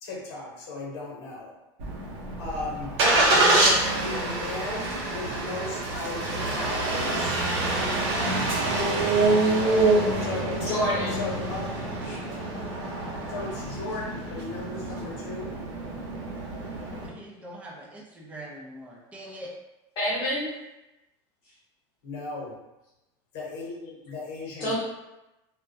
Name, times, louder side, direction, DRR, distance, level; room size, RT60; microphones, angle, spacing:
voice 1, 0.0-1.5 2.4-3.0 3.3-7.4 10.2-11.7 13.3-15.6 22.0-22.5 23.3-24.8, left 3 dB, 75° left, -3 dB, 0.9 m, -36 dB
Engine starting, 1.8-17.1, right 2 dB, 85° right, 0.7 m, -26 dB
voice 2, 10.7-11.2 12.0-12.1 20.0-20.5 24.6-24.8, equal, 35° left, -8 dB, 0.7 m, -27 dB
voice 3, 17.0-19.5, right 1 dB, 10° right, -3 dB, 0.4 m, -43 dB
2.2 x 2.1 x 2.6 m, 0.98 s
supercardioid pair, 145°, 14 cm